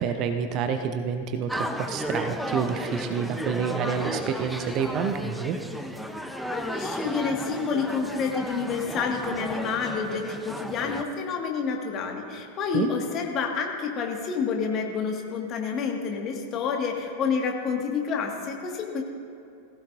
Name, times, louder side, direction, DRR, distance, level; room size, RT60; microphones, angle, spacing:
voice 1, 0.0-5.6 12.7-12.9, right 7 dB, 35° right, 7 dB, 0.8 m, -28 dB
sound 1, 1.5-11.0, equal, ahead, 0.7 m, -34 dB
voice 2, 6.5-19.0, left 5 dB, 30° left, 1 dB, 1.8 m, -29 dB
18.5 x 16.0 x 2.6 m, 2.4 s
figure-of-eight pair, 90°, 0 cm